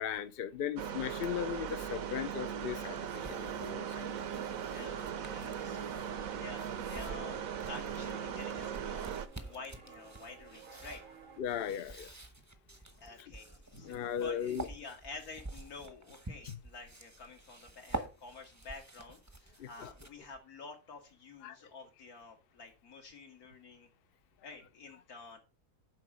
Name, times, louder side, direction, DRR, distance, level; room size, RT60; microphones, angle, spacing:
voice 1, 0.0-4.1 11.4-12.1 13.2-13.3 13.8-14.7 19.6-19.9 21.4-21.6, left 9 dB, 55° left, 0.6 m, -37 dB
sound 1, 0.8-9.3, right 8 dB, 70° right, 1.2 m, -39 dB
sound 2, 2.6-20.4, right 2 dB, 15° right, 0.7 m, -49 dB
sound 3, 3.1-11.4, right 6 dB, 45° right, 0.8 m, -53 dB
voice 2, 4.7-6.0 6.3-11.0 13.0-23.9 24.4-25.4, left 4 dB, 75° left, 2.3 m, -50 dB
7.5 x 5.0 x 6.0 m
omnidirectional pair, 1.6 m